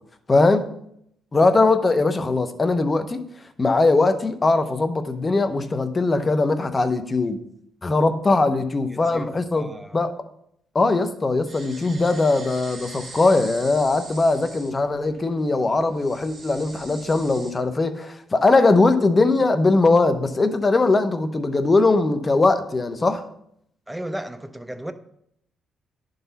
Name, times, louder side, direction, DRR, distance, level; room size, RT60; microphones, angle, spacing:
voice 1, 0.3-0.7 1.3-3.2 3.6-7.4 7.8-10.2 10.7-23.2, left 3 dB, 25° left, 0.7 m, -20 dB
voice 2, 8.9-10.0 23.9-24.9, right 1 dB, 10° right, 0.6 m, -35 dB
sound 1, 11.5-17.5, right 3 dB, 35° right, 1.5 m, -42 dB
10.5 x 3.9 x 4.1 m
cardioid pair, 90°, 0 cm